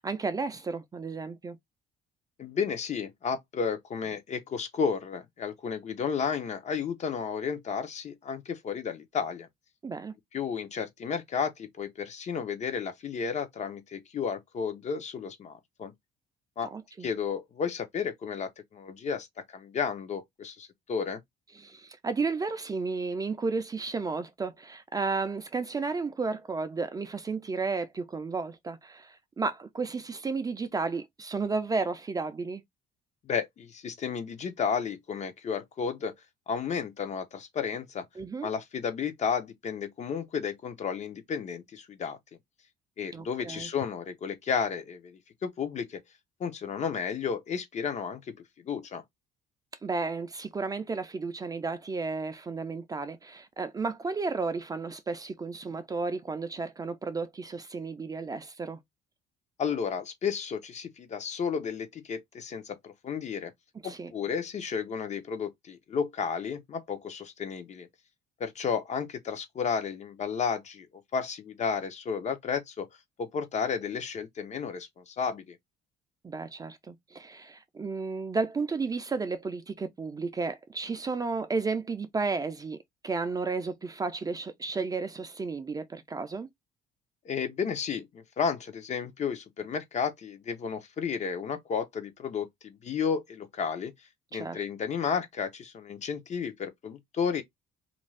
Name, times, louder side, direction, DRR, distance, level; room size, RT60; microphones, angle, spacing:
voice 1, 0.0-1.6 9.8-10.1 16.7-17.1 21.5-32.6 38.2-38.5 43.1-43.7 49.8-58.8 63.8-64.1 76.2-82.8 83.0-86.5 94.3-94.6, right 4 dB, 20° right, 0.4 m, -33 dB
voice 2, 2.4-9.5 10.3-15.9 16.6-16.7 17.0-21.2 33.2-36.1 36.5-38.1 38.4-42.2 43.0-46.0 46.4-48.4 48.6-49.0 59.6-63.5 63.8-67.9 68.4-70.9 71.1-72.9 73.2-75.6 87.2-93.9 94.3-97.4, left 6 dB, 45° left, 0.7 m, -32 dB
2.5 x 2.3 x 3.2 m
cardioid pair, 110°, 17 cm